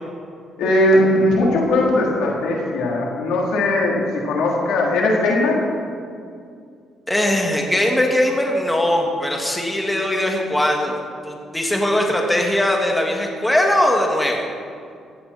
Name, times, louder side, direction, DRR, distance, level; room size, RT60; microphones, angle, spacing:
voice 1, 0.6-4.0 4.2-5.6, left 1 dB, 90° left, -2 dB, 3.2 m, -19 dB
voice 2, 7.1-11.0 11.2-14.5, left 1 dB, 10° left, 1 dB, 2.2 m, -20 dB
16.0 x 14.5 x 4.3 m, 2.3 s
cardioid pair, 90°, 0 cm